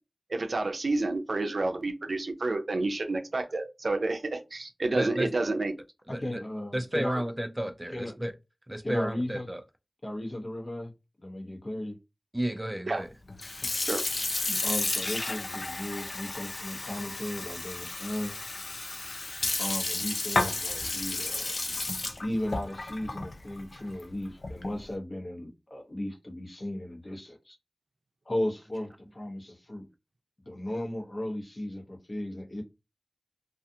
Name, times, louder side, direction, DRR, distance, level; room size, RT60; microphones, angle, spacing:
voice 1, 0.3-5.7 12.9-13.0 13.8-14.0 14.5-14.6, right 2 dB, 80° right, 0.4 m, -29 dB
voice 2, 4.9-5.3 6.1-6.4 6.7-8.3 8.7-9.6 12.3-13.1, right 1 dB, 15° right, 0.4 m, -32 dB
voice 3, 6.1-7.2 7.9-8.1 8.8-9.5 10.0-10.9 11.2-12.0 14.6-18.4 19.6-21.6 22.2-27.6 28.2-29.9 30.5-32.6, left 1 dB, 50° left, 0.9 m, -36 dB
Sink (filling or washing) / Fill (with liquid), 13.3-24.8, left 2 dB, 75° left, 0.4 m, -32 dB
2.4 x 2.4 x 2.6 m
wide cardioid pair, 40°, 0 cm